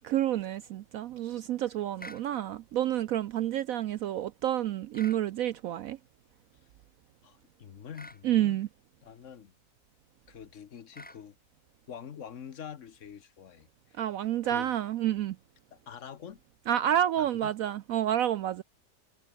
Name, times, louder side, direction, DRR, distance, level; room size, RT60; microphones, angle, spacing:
voice 1, 0.0-6.0 8.2-8.7 14.0-15.4 16.7-18.6, right 11 dB, 70° right, 0.8 m, -29 dB
sound 1, 2.0-2.3 4.9-5.2 7.9-8.2 10.9-11.2, left 1 dB, 5° left, 1.6 m, -47 dB
voice 2, 7.2-8.6 9.0-9.5 10.3-11.4 11.9-14.0 14.4-14.7 15.7-16.4 17.2-17.5, left 8 dB, 50° left, 1.2 m, -45 dB
omnidirectional pair, 1.8 m